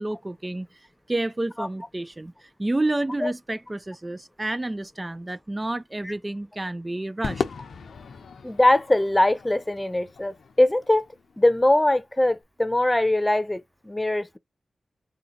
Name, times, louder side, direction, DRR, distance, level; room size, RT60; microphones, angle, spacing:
voice 1, 0.0-7.4, right 2 dB, 25° right, 0.4 m, -30 dB
Crowd / Fireworks, 7.2-11.7, left 5 dB, 85° left, 0.7 m, -36 dB
voice 2, 8.4-11.0 11.4-14.4, left 1 dB, 20° left, 0.8 m, -22 dB
3.8 x 2.8 x 3.8 m
cardioid pair, 40°, 0 cm